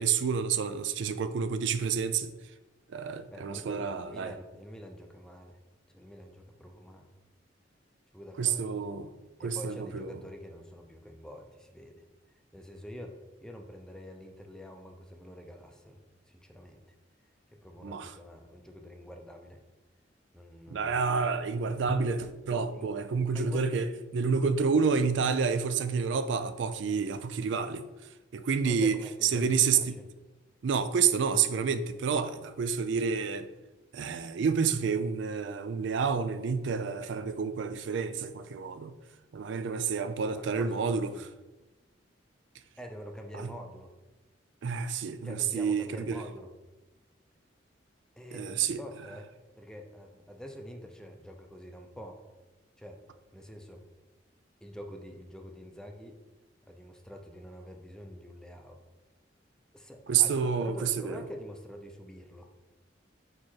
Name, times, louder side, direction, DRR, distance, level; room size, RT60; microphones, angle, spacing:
voice 1, 0.0-2.3 2.9-4.3 8.4-9.1 9.4-10.2 17.8-18.1 20.7-27.9 28.3-29.0 29.2-30.0 30.6-33.5 33.9-38.9 39.3-41.1 43.4-43.5 44.6-46.2 48.3-48.8 60.1-61.2, right 6 dB, 70° right, 0.4 m, -29 dB
voice 2, 3.3-5.6 5.9-7.1 8.1-8.7 9.4-12.0 12.5-16.0 16.3-16.8 17.5-19.6 20.3-21.1 22.5-22.9 23.2-23.7 28.6-30.0 40.3-41.3 42.8-43.9 45.2-46.5 48.2-49.3 49.6-52.2 52.8-53.0 53.3-53.8 54.6-56.2 56.7-58.8 59.7-62.5, equal, 5° left, 0.6 m, -46 dB
4.7 x 4.7 x 4.4 m
head